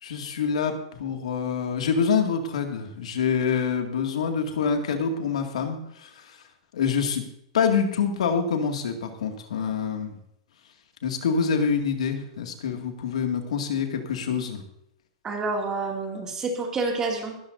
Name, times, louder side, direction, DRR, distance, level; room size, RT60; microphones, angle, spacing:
voice 1, 0.0-6.1 6.7-7.2 7.5-10.2 11.0-14.6, left 6 dB, 85° left, 4 dB, 2.1 m, -26 dB
voice 2, 15.2-17.3, right 3 dB, 15° right, 1 dB, 2.4 m, -28 dB
19.0 x 13.5 x 2.7 m, 0.77 s
supercardioid pair, 155°, 3 cm